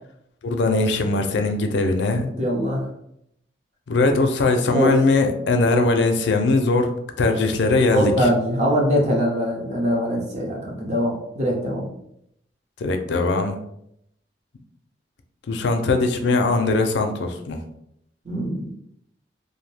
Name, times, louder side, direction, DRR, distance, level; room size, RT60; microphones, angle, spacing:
voice 1, 0.4-2.3 3.9-8.3 12.8-13.6 15.5-17.6, left 3 dB, 75° left, 6 dB, 0.4 m, -20 dB
voice 2, 2.3-2.8 4.7-5.0 7.9-11.9 18.3-18.7, equal, 40° right, -1 dB, 0.7 m, -22 dB
2.6 x 2.0 x 3.2 m, 0.75 s
head